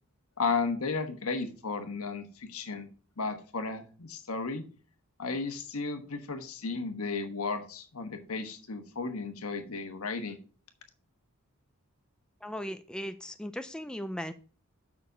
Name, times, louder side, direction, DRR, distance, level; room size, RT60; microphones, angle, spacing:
voice 1, 0.4-2.9 3.2-4.6 5.2-10.4, left 4 dB, 70° left, 7 dB, 1.2 m, -34 dB
voice 2, 12.4-14.3, equal, 5° left, 8 dB, 0.3 m, -37 dB
7.0 x 6.0 x 4.9 m, 0.40 s
head